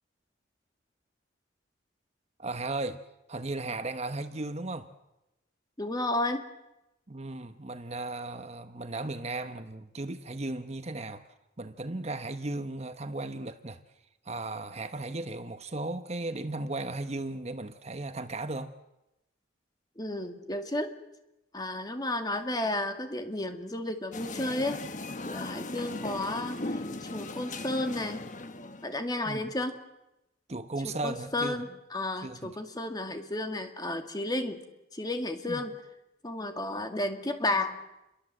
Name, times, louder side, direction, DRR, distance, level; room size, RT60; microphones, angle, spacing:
voice 1, 2.4-3.0 3.3-4.9 7.1-11.2 11.6-13.8 14.2-18.7 29.3-29.5 30.5-31.6 32.2-32.6 35.4-35.6, right 2 dB, 35° right, 1.1 m, -36 dB
voice 2, 5.8-6.4 20.0-20.9 21.5-24.8 25.2-28.2 28.8-29.8 31.0-34.6 34.9-35.7 36.2-37.8, left 1 dB, 20° left, 2.3 m, -32 dB
sound 1, 24.1-29.0, left 2 dB, 40° left, 1.3 m, -38 dB
28.5 x 23.0 x 7.8 m
head